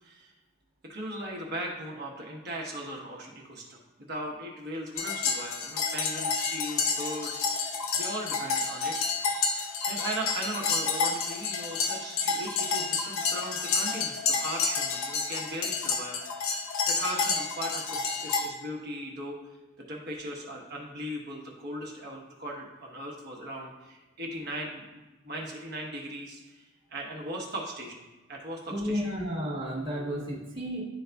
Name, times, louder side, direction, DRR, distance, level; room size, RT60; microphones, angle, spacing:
voice 1, 0.0-0.3 0.8-8.9 9.5-16.2 16.9-19.4 19.9-28.0 28.3-29.0, right 1 dB, 50° right, -1 dB, 1.1 m, -38 dB
sound 1, 5.0-18.5, left 5 dB, 75° left, 0.7 m, -30 dB
voice 2, 28.7-30.8, equal, 20° right, -7 dB, 1.3 m, -32 dB
11.0 x 3.9 x 2.3 m, 1.1 s
head